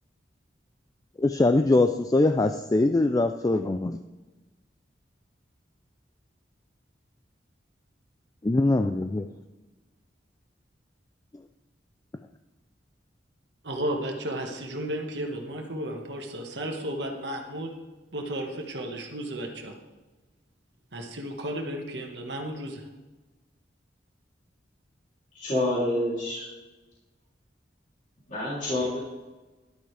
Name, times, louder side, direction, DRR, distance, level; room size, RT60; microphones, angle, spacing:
voice 1, 1.2-4.0 8.4-9.3, left 2 dB, 20° left, 8 dB, 0.3 m, -22 dB
voice 2, 13.6-17.7 18.1-19.8 20.9-22.8, right 1 dB, 70° right, 2 dB, 1.5 m, -33 dB
voice 3, 25.3-26.4 28.3-29.0, left 1 dB, 45° left, -9 dB, 3.2 m, -27 dB
13.5 x 11.5 x 3.4 m, 1.2 s
head